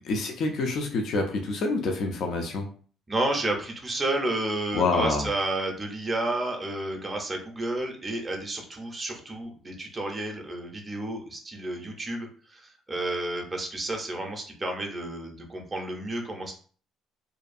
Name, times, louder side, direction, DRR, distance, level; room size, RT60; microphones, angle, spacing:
voice 1, 0.0-2.7 4.7-5.3, left 3 dB, 50° left, 3 dB, 0.3 m, -27 dB
voice 2, 3.1-16.5, right 2 dB, 15° right, 1 dB, 0.5 m, -31 dB
2.5 x 2.3 x 2.4 m, 0.42 s
cardioid pair, 165°, 0 cm